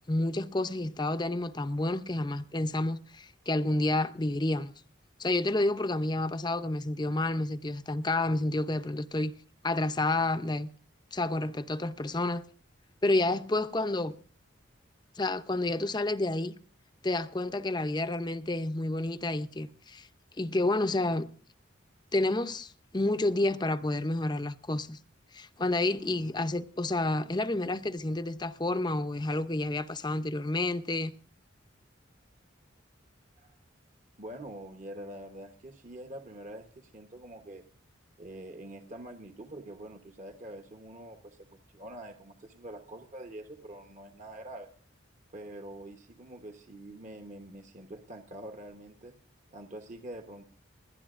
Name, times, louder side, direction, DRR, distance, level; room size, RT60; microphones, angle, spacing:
voice 1, 0.1-4.7 5.2-9.3 9.6-10.7 11.1-12.4 13.0-14.1 15.2-16.5 17.0-20.1 20.4-21.3 22.1-25.0 25.3-31.1, left 2 dB, 20° left, 0.6 m, -29 dB
voice 2, 34.2-37.6 38.2-44.7 45.3-49.1 49.5-50.4, right 1 dB, 40° right, 1.0 m, -45 dB
29.5 x 10.5 x 2.5 m
head